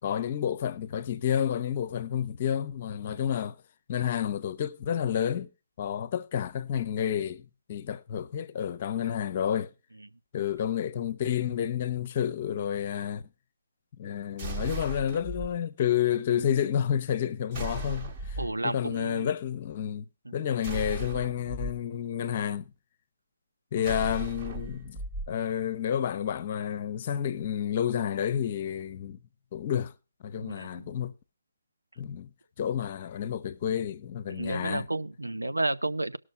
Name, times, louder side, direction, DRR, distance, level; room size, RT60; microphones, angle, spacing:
voice 1, 0.0-3.6 3.9-5.5 5.8-9.7 10.3-13.2 14.0-20.1 20.3-22.7 23.7-29.2 29.5-29.9 30.2-31.1 32.0-32.3 32.6-34.9, left 9 dB, 35° left, 0.6 m, -30 dB
sound 1, 14.4-15.5 17.5-18.6 20.6-21.7 23.8-25.3, right 2 dB, 30° right, 1.1 m, -36 dB
voice 2, 18.4-19.3 20.3-20.4 30.4-30.8 34.3-36.2, right 2 dB, 80° right, 0.7 m, -31 dB
18.5 x 6.4 x 4.1 m
figure-of-eight pair, 140°, 0 cm